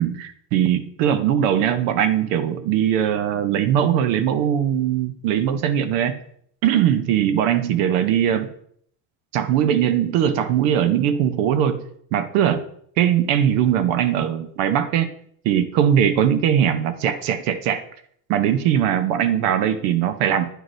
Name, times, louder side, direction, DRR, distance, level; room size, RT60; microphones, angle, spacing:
voice 1, 0.0-6.2 6.6-8.5 9.3-11.9 12.1-12.6 13.0-15.1 15.4-17.8 18.3-20.5, right 9 dB, 85° right, 10 dB, 0.8 m, -20 dB
11.5 x 4.7 x 2.6 m, 0.64 s
cardioid pair, 170°, 41 cm